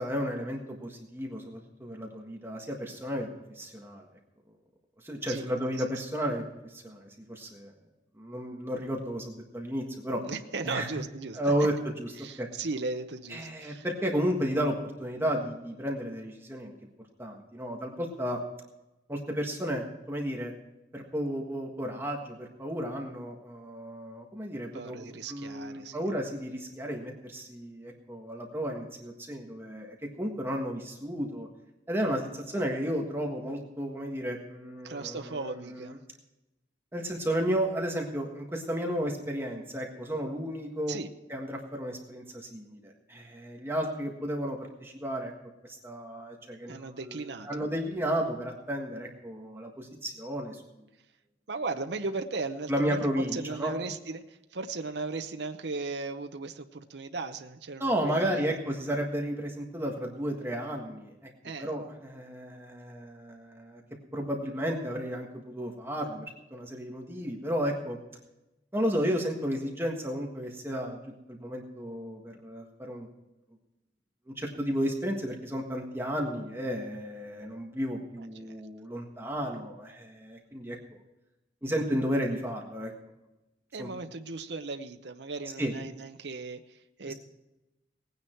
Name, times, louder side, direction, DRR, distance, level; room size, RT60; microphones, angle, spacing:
voice 1, 0.0-4.0 5.0-6.4 6.7-7.7 8.2-10.2 10.6-10.9 11.3-11.7 12.0-12.1 12.4-12.5 13.3-16.7 17.2-18.4 19.1-20.5 20.9-25.0 25.3-31.5 31.9-36.0 36.9-41.0 41.3-45.3 45.8-50.6 52.7-53.7 57.8-61.1 61.6-63.8 64.1-66.2 66.5-68.0 68.7-73.1 74.4-80.8 81.6-82.9 83.8-83.9 85.6-85.7 87.1-87.2, equal, 15° right, 1 dB, 1.6 m, -33 dB
voice 2, 10.3-11.4 12.2-13.9 24.7-26.1 34.8-36.0 40.9-41.1 46.7-47.7 51.5-58.5 61.4-61.7 78.4-78.6 83.7-87.1, right 3 dB, 65° right, 7 dB, 0.8 m, -37 dB
18.0 x 9.6 x 4.5 m, 0.97 s
head